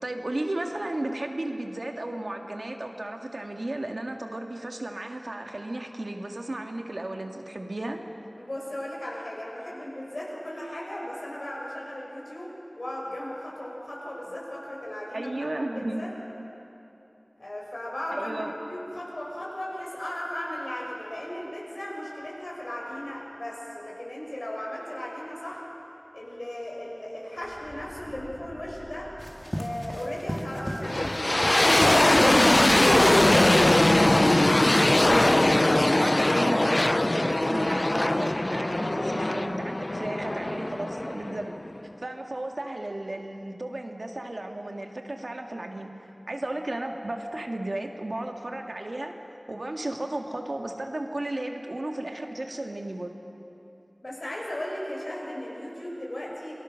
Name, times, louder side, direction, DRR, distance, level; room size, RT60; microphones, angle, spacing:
voice 1, 0.0-8.0 15.1-16.0 16.4-16.5 18.1-18.5 32.2-41.5 42.0-45.9 46.3-49.1 49.5-53.1, right 1 dB, 80° right, 3 dB, 1.8 m, -34 dB
voice 2, 8.4-15.5 16.0-16.1 17.4-25.6 26.1-29.1 29.5-32.1 54.0-56.5, left 1 dB, 70° left, -3 dB, 6.1 m, -36 dB
sound 1, 27.4-29.9 31.9-34.4, equal, 30° left, 3.0 m, -46 dB
sound 2, 29.2-34.9, equal, ahead, 2.4 m, -35 dB
sound 3, 30.8-41.8, left 1 dB, 50° left, 0.4 m, -21 dB
27.5 x 19.5 x 6.4 m, 2.9 s
wide cardioid pair, 40°, 0 cm